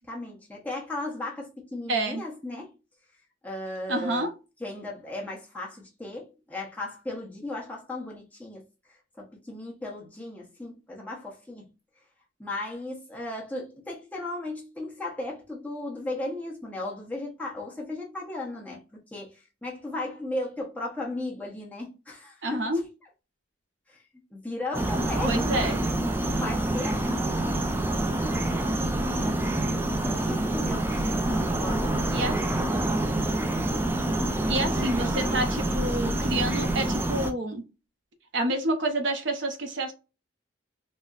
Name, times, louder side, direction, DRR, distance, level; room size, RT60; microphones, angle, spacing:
voice 1, 0.1-2.7 3.4-4.3 4.6-8.6 9.2-11.7 12.4-22.6 23.9-24.0 24.3-27.1 30.0-31.9 32.4-32.7, left 2 dB, 10° left, 0.8 m, -36 dB
voice 2, 1.9-2.2 3.9-4.3 22.4-22.8 25.2-25.8 32.1-32.4 34.5-37.6 38.3-39.9, right 1 dB, 70° right, 0.6 m, -28 dB
sound 1, 24.7-37.3, right 1 dB, 10° right, 0.3 m, -27 dB
4.0 x 2.1 x 2.4 m
head